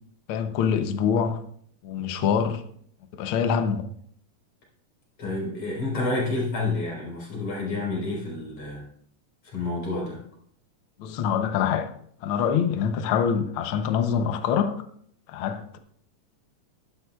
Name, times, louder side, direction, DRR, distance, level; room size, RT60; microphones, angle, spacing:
voice 1, 0.3-1.4 1.8-2.6 3.2-3.9 11.0-11.9 12.2-14.8 15.3-15.8, left 7 dB, 80° left, 1.1 m, -25 dB
voice 2, 5.2-8.9 9.4-10.2, left 2 dB, 55° left, 5.2 m, -29 dB
12.0 x 11.5 x 2.3 m
omnidirectional pair, 3.5 m